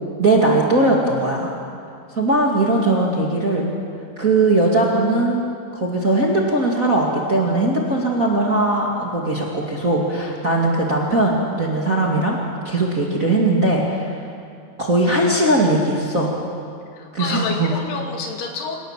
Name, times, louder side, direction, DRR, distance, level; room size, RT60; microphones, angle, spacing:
voice 1, 0.2-1.5 2.1-3.7 4.2-5.4 5.7-12.4 12.6-14.1 14.8-16.3 17.1-17.7, right 2 dB, 30° right, -2 dB, 1.8 m, -19 dB
voice 2, 16.9-18.8, left 4 dB, 90° left, 2 dB, 4.3 m, -29 dB
25.0 x 18.0 x 7.4 m, 2.3 s
omnidirectional pair, 4.5 m